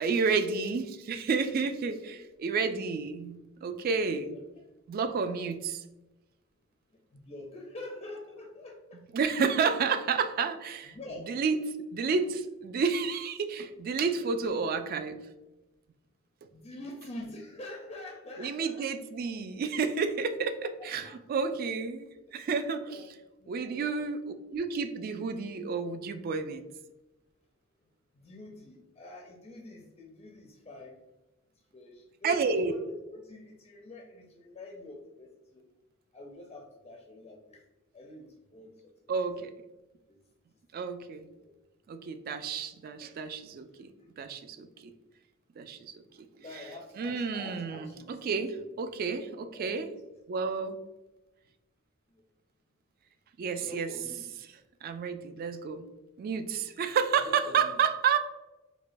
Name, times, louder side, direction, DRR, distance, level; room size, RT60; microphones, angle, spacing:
voice 1, 0.0-4.3 4.9-5.8 9.1-11.0 11.3-11.6 11.9-15.2 18.4-23.1 23.5-24.2 24.5-26.6 32.2-32.7 39.1-39.5 40.7-41.3 41.9-43.9 44.2-44.9 45.6-46.3 46.5-46.6 47.0-49.9 50.3-50.8 53.4-53.9 54.8-55.8 56.2-58.2, right 5 dB, 45° right, 10 dB, 0.3 m, -30 dB
voice 2, 4.0-4.4 7.1-9.0 10.1-10.2 10.8-11.4 14.4-14.6 16.5-18.9 20.0-20.1 20.8-21.2 22.3-22.4 22.9-23.1 23.4-24.0 28.1-31.0 31.7-35.6 36.1-37.6 37.9-38.7 39.1-39.3 40.1-40.2 41.4-41.5 46.4-48.6 49.5-49.9 53.6-54.4 57.2-57.7, left 2 dB, 30° left, 0 dB, 0.4 m, -46 dB
4.9 x 2.2 x 2.5 m, 1.0 s
head